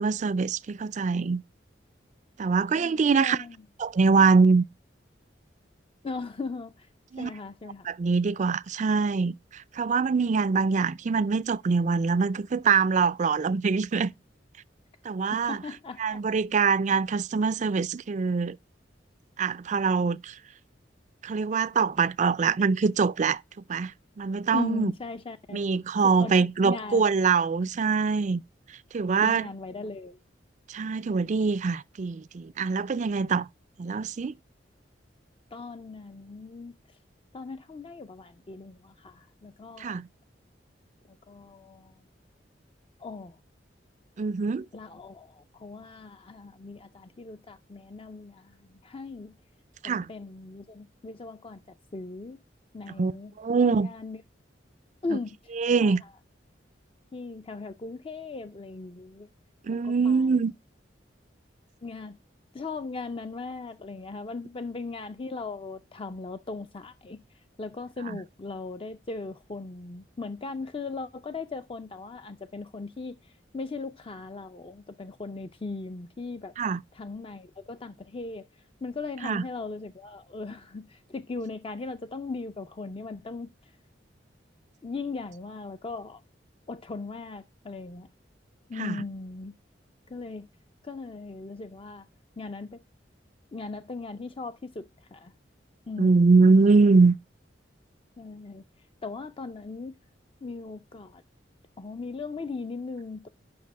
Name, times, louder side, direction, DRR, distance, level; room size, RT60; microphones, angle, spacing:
voice 1, 0.0-1.4 2.4-3.4 3.8-4.6 7.1-7.3 7.9-14.1 15.0-15.6 16.0-18.6 19.4-20.4 21.2-23.4 23.7-24.9 25.5-28.4 28.9-29.5 30.7-33.5 33.8-34.3 39.8-40.1 44.2-44.7 49.8-50.1 53.0-53.1 53.4-53.9 55.1-55.2 55.5-56.0 59.6-60.5 68.1-68.2 76.6-76.8 79.2-79.4 88.8-89.0 96.0-97.2, right 4 dB, 45° right, 0.4 m, -23 dB
voice 2, 2.7-3.6 6.0-6.9 7.2-7.9 15.3-16.3 24.5-25.6 26.0-27.1 29.2-30.2 35.5-36.7 37.3-40.0 41.1-42.0 43.0-43.4 44.7-49.3 49.8-51.6 51.9-52.4 52.7-54.2 55.0-55.5 55.8-56.1 57.1-59.3 59.7-60.3 61.8-62.2 62.5-76.5 76.9-83.8 84.8-86.2 86.7-88.1 88.7-89.5 90.1-90.5 90.8-92.1 92.4-92.8 93.5-95.3 95.9-96.5 98.2-100.0 100.4-101.2 101.8-103.3, left 3 dB, 30° left, 0.5 m, -38 dB
9.5 x 6.0 x 4.7 m
head